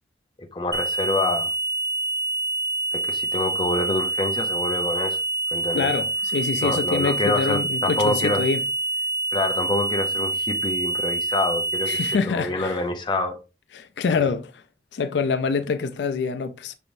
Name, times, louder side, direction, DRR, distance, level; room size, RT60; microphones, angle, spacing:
voice 1, 0.5-1.5 2.9-5.2 5.5-5.9 6.6-8.5 9.3-12.0 12.3-13.4 14.1-14.3, left 2 dB, 25° left, 0.6 m, -26 dB
sound 1, 0.7-12.1, right 2 dB, 20° right, 0.5 m, -26 dB
voice 2, 5.7-8.6 11.9-12.8 13.7-14.6 14.9-16.7, left 5 dB, 80° left, 0.4 m, -25 dB
5.9 x 3.4 x 2.6 m
head